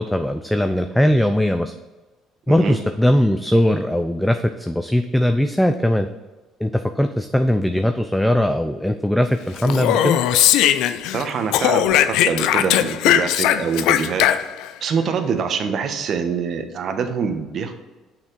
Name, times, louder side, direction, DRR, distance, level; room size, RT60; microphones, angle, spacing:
voice 1, 0.0-1.7 2.5-6.1 6.6-10.2, left 1 dB, 5° left, 7 dB, 0.5 m, -19 dB
voice 2, 2.5-2.8 11.1-14.3 14.8-17.7, right 6 dB, 55° right, 7 dB, 1.1 m, -25 dB
Speech, 9.6-11.2 11.5-14.7, left 11 dB, 80° left, 0.4 m, -18 dB
6.5 x 5.8 x 4.6 m, 1.2 s
supercardioid pair, 80°, 0 cm